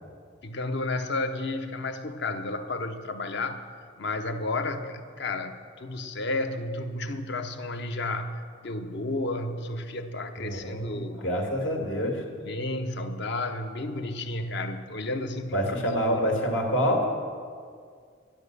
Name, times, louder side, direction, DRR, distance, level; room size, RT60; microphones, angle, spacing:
voice 1, 0.4-3.7 4.0-11.2 12.4-15.8 16.1-16.3, left 2 dB, 65° left, 0.9 m, -32 dB
voice 2, 10.4-12.2 15.5-17.1, equal, 80° left, 2.4 m, -27 dB
12.0 x 11.0 x 6.8 m
head